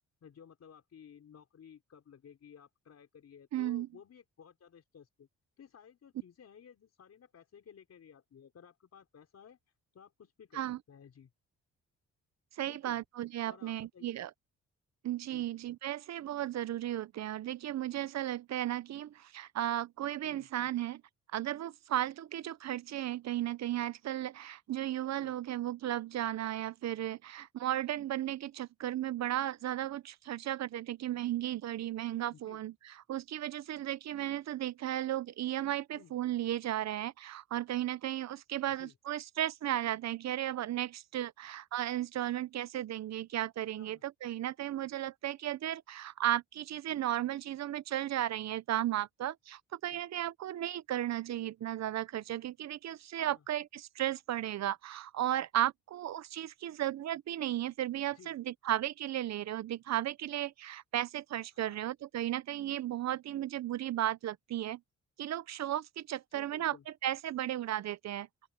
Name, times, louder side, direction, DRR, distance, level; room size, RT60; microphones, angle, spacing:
voice 1, 0.2-5.3 5.6-9.6 9.9-10.6 10.9-11.3 12.7-13.0 13.4-14.2 15.3-15.5 20.2-20.5 25.2-25.3 32.3-32.6 35.9-36.1 38.6-39.0 43.8-44.0 49.8-50.0 53.2-53.5 58.1-58.3 61.5-61.8 66.3-66.9, left 7 dB, 55° left, 4.9 m, -56 dB
voice 2, 3.5-3.9 10.5-10.8 12.6-14.3 15.0-21.0 21.3-32.7 33.1-64.8 65.2-66.8 67.0-68.3, right 12 dB, 60° right, 0.7 m, -35 dB
open air
cardioid pair, 90°, 31 cm